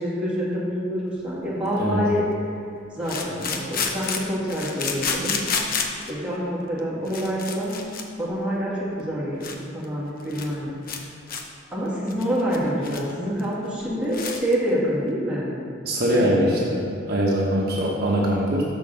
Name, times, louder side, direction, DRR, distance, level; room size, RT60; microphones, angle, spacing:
voice 1, 0.0-2.2 2.9-5.4 6.1-7.8 8.2-9.5 9.7-10.8 11.7-15.5 16.1-16.7, equal, 5° right, -9 dB, 2.0 m, -26 dB
sound 1, 1.2-1.3 3.0-6.1 6.8-6.9 7.1-8.0 8.3-8.5 9.0-9.1 9.4-9.6 9.8-9.9 10.2-10.5 10.9-11.0 11.3-11.4 11.8-13.1 13.4-13.5 13.8-13.9 14.1-14.5, left 5 dB, 45° left, 0.7 m, -29 dB
voice 2, 15.8-18.6, equal, 50° right, -4 dB, 1.0 m, -22 dB
6.2 x 5.2 x 6.5 m, 2.5 s
head